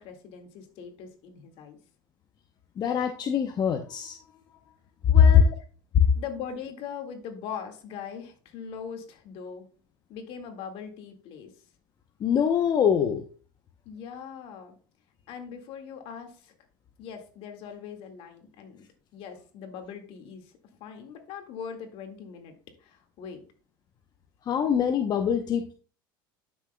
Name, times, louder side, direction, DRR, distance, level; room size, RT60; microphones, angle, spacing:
voice 1, 0.0-1.8 5.1-5.5 6.2-9.7 10.1-11.5 13.9-14.7 15.3-16.5 17.0-18.9 19.1-20.5 20.8-22.5 22.8-23.4, left 7 dB, 60° left, 5 dB, 2.0 m, -40 dB
voice 2, 2.8-4.2 5.9-6.0 12.2-13.2 24.5-25.7, left 8 dB, 40° left, 6 dB, 0.8 m, -24 dB
11.5 x 6.3 x 2.3 m, 0.39 s
supercardioid pair, 95°, 11 cm